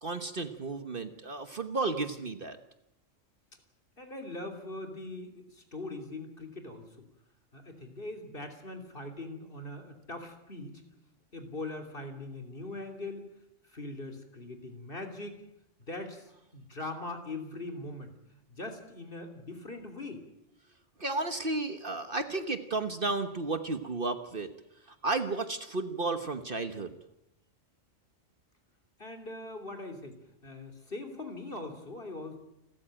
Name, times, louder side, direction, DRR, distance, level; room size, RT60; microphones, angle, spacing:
voice 1, 0.0-2.6 21.0-24.5 25.0-26.9, right 3 dB, 45° right, 9 dB, 1.4 m, -33 dB
voice 2, 4.0-7.1 7.5-10.8 11.3-13.3 13.6-15.4 15.8-18.1 18.5-20.2 29.0-30.2 30.4-32.4, left 2 dB, 45° left, 5 dB, 3.3 m, -41 dB
28.5 x 14.0 x 9.0 m, 0.84 s
omnidirectional pair, 1.3 m